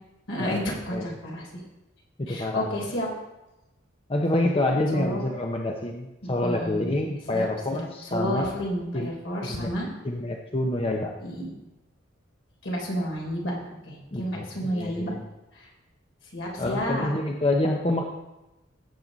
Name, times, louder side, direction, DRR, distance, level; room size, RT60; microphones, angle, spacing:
voice 1, 0.3-0.6 0.9-1.6 2.3-3.1 4.9-5.2 6.2-6.9 7.3-9.9 11.2-11.5 12.6-13.5 13.9-15.1 15.5-15.7 16.3-17.1, equal, 65° left, -2 dB, 3.8 m, -31 dB
voice 2, 2.2-2.7 4.1-8.5 8.9-9.1 9.4-9.7 10.0-11.1 14.1-15.2 16.6-18.0, left 1 dB, 30° left, 1 dB, 0.8 m, -27 dB
16.5 x 7.7 x 4.0 m, 0.98 s
head